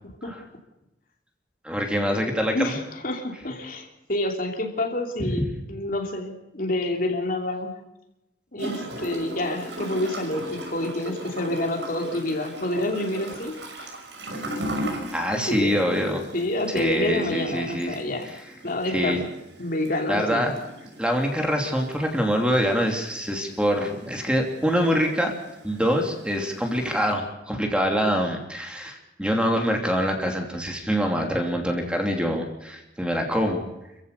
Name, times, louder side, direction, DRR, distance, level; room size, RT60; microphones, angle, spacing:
voice 1, 1.6-2.8 5.2-5.5 15.1-16.3 16.7-18.4 18.9-19.2 20.1-20.5 21.0-25.3 25.6-33.6, equal, 5° right, 2 dB, 2.9 m, -25 dB
voice 2, 2.5-7.7 8.5-13.9 15.3-15.9 16.3-18.3 18.6-19.3 19.6-20.5, left 1 dB, 55° left, 3 dB, 3.1 m, -28 dB
Gurgling / Toilet flush, 8.6-27.1, right 1 dB, 90° right, 5.8 m, -38 dB
27.5 x 15.0 x 6.8 m, 0.92 s
head